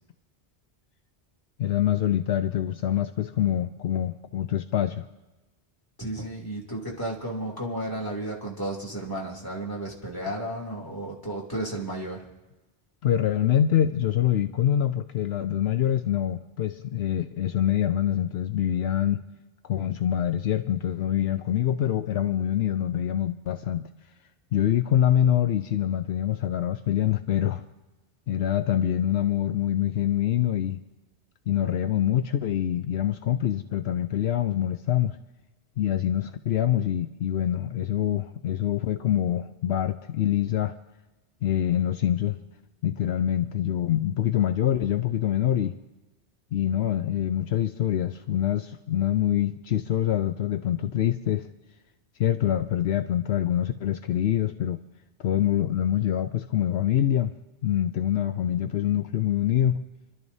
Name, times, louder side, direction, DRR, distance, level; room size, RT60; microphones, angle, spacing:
voice 1, 1.6-5.1 13.0-19.2 19.6-23.9 24.5-27.6 28.3-30.8 31.5-35.2 35.8-40.7 41.4-42.4 42.8-45.8 46.5-51.5 52.2-54.8 55.2-57.3 57.6-59.8, left 11 dB, 75° left, 8 dB, 0.9 m, -25 dB
voice 2, 6.0-12.3, right 1 dB, 20° left, -4 dB, 2.8 m, -33 dB
29.0 x 12.5 x 2.7 m, 1.1 s
omnidirectional pair, 1.1 m